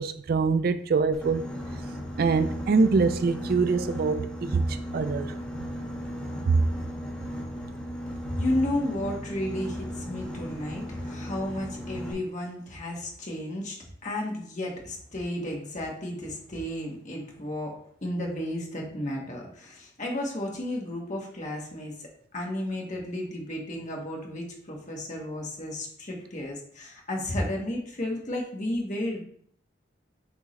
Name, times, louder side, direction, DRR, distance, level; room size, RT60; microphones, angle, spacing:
voice 1, 0.0-1.4 2.2-5.3 6.4-6.6, right 4 dB, 55° right, 0.4 m, -24 dB
Boat Water vehicle, 1.1-12.1, equal, 10° left, 1.6 m, -36 dB
voice 2, 8.2-13.8 14.0-29.2, left 1 dB, 40° left, 1.4 m, -33 dB
8.3 x 3.6 x 3.1 m
head